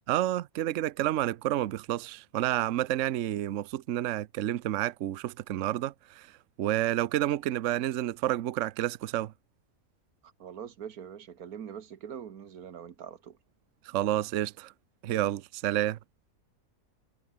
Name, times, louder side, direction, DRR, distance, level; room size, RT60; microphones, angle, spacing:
voice 1, 0.1-6.3 6.6-9.3 13.8-14.7 15.0-16.0, right 13 dB, 65° right, 0.9 m, -29 dB
voice 2, 10.2-13.4 15.8-15.9, right 8 dB, 85° right, 1.7 m, -43 dB
omnidirectional pair, 1.5 m